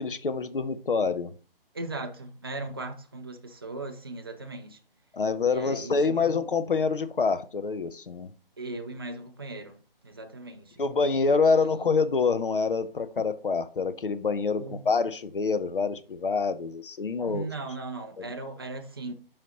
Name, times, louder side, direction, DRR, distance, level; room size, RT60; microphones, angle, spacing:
voice 1, 0.0-1.3 5.1-8.3 10.8-17.5 18.2-18.3, left 4 dB, 65° left, 0.8 m, -26 dB
voice 2, 1.7-4.8 5.5-6.3 8.6-10.8 11.5-11.9 14.6-14.8 17.2-19.1, right 2 dB, 25° right, 0.5 m, -38 dB
5.5 x 5.1 x 4.0 m
figure-of-eight pair, 150°, 29 cm